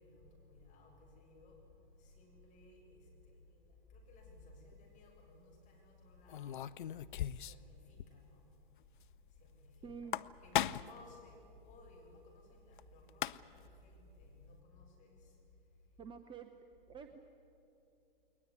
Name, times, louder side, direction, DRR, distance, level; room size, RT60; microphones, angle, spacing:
voice 1, 0.0-6.8 7.3-8.5 9.3-10.1 10.4-15.4, left 2 dB, 25° left, 0 dB, 6.3 m, -59 dB
sound 1, 4.5-4.8 6.3-7.7 8.0-8.1 8.4-8.5 9.9-11.0 12.8-12.9 13.1-13.7, left 11 dB, 60° left, 0.6 m, -37 dB
voice 2, 9.8-10.2 16.0-16.5 16.9-17.2, right 6 dB, 15° right, 8 dB, 0.9 m, -48 dB
21.0 x 19.5 x 9.6 m, 2.8 s
figure-of-eight pair, 105°, 29 cm